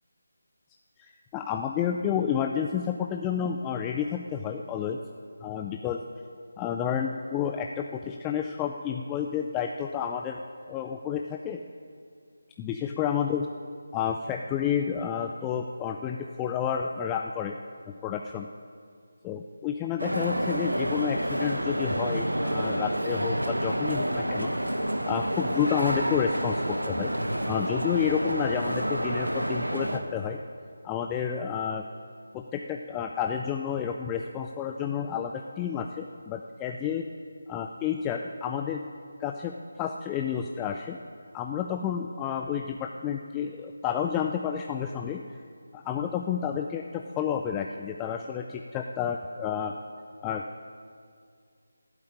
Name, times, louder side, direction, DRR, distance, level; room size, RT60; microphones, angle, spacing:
voice 1, 1.0-5.0 5.4-6.1 6.6-10.4 10.7-11.6 12.6-13.5 13.9-17.6 18.0-18.5 19.2-24.5 25.0-27.1 27.5-30.4 30.8-31.8 32.3-37.0 37.5-38.8 39.2-41.0 41.3-45.2 45.7-49.7 50.2-50.4, left 8 dB, 10° left, 3 dB, 0.4 m, -30 dB
sound 1, 20.0-30.0, right 1 dB, 80° right, 1.4 m, -29 dB
12.5 x 8.2 x 8.7 m, 2.2 s
figure-of-eight pair, 155°, 0 cm